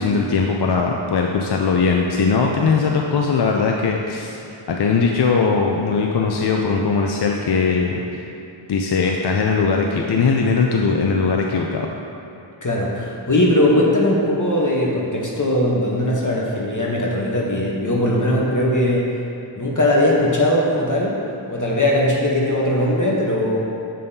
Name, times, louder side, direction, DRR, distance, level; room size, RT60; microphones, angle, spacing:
voice 1, 0.0-4.4 4.7-8.2 8.7-11.9, left 5 dB, 55° left, 1 dB, 0.5 m, -19 dB
voice 2, 12.6-19.1 19.6-21.2 21.5-23.6, left 1 dB, 40° left, -3 dB, 0.9 m, -19 dB
7.6 x 5.2 x 2.7 m, 2.9 s
wide cardioid pair, 55°, 49 cm